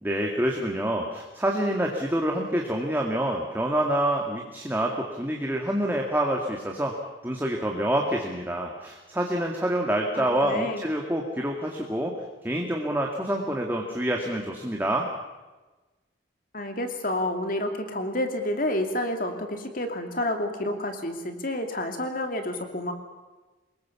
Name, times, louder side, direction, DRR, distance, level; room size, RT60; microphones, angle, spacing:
voice 1, 0.0-6.9 7.2-12.1 12.4-15.1, right 1 dB, 10° right, 0 dB, 2.0 m, -27 dB
voice 2, 10.1-10.8 16.5-22.9, left 1 dB, 45° left, 5 dB, 2.8 m, -29 dB
25.0 x 21.5 x 7.2 m, 1.2 s
head